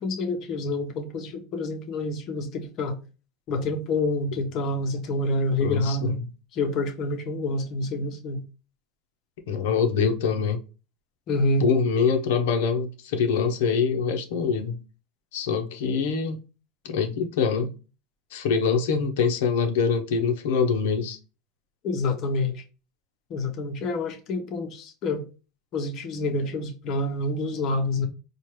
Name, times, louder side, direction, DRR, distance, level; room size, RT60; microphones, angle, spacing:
voice 1, 0.0-3.0 3.5-6.2 6.5-8.4 11.3-11.7 21.8-22.6 23.3-25.2 25.7-28.1, left 2 dB, 45° left, 1.0 m, -27 dB
voice 2, 5.6-6.1 9.5-10.6 11.6-14.8 15.3-16.4 16.9-17.7 18.3-21.2, left 5 dB, 75° left, 0.8 m, -24 dB
4.4 x 2.4 x 3.2 m
supercardioid pair, 110°, 0 cm